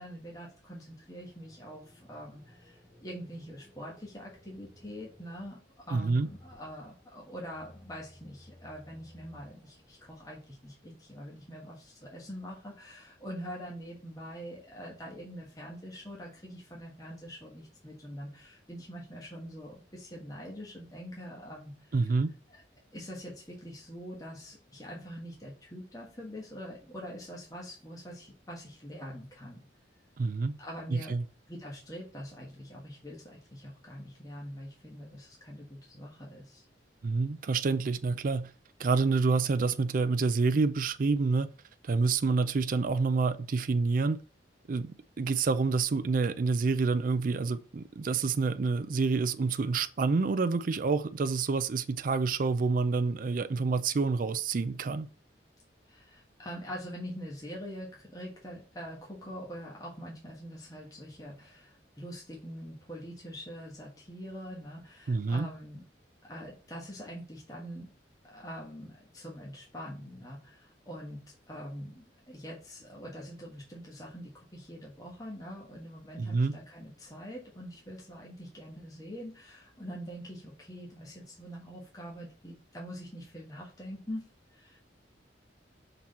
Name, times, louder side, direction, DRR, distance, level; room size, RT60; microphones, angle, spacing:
voice 1, 0.0-5.6 5.9-22.1 22.5-22.6 22.9-29.7 30.6-31.1 31.5-36.6 55.9-65.8 66.3-67.9 68.3-84.2 84.5-84.8, equal, 20° left, 1.4 m, -44 dB
sound 1, 0.9-10.7, left 1 dB, 5° right, 2.3 m, -59 dB
voice 2, 5.9-6.3 21.9-22.3 30.2-30.6 30.9-31.2 37.0-38.5 38.8-41.5 41.8-44.2 44.7-55.1 65.1-65.5 76.2-76.6, right 4 dB, 50° right, 0.4 m, -28 dB
6.0 x 3.9 x 4.2 m
head